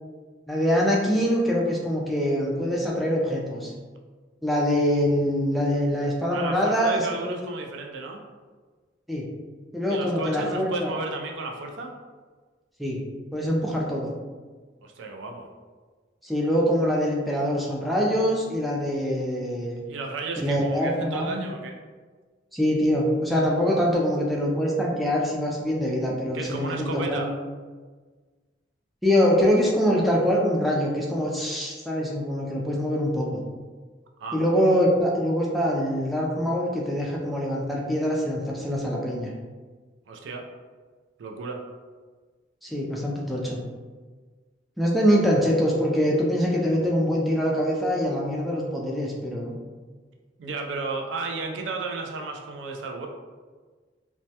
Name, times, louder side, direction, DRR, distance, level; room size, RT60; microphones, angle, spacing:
voice 1, 0.5-3.7 4.4-7.4 9.1-9.3 9.7-10.9 12.8-13.0 13.3-14.1 16.2-19.8 20.4-21.4 22.5-27.3 29.0-33.4 34.3-39.3 42.6-43.6 44.8-49.5, equal, ahead, -3 dB, 0.3 m, -24 dB
voice 2, 6.3-8.2 9.9-11.9 14.8-15.5 19.9-21.8 26.3-27.3 34.2-34.4 40.1-40.4 41.2-41.6 50.4-53.1, right 3 dB, 80° right, 3 dB, 0.3 m, -33 dB
2.1 x 2.1 x 2.7 m, 1.4 s
head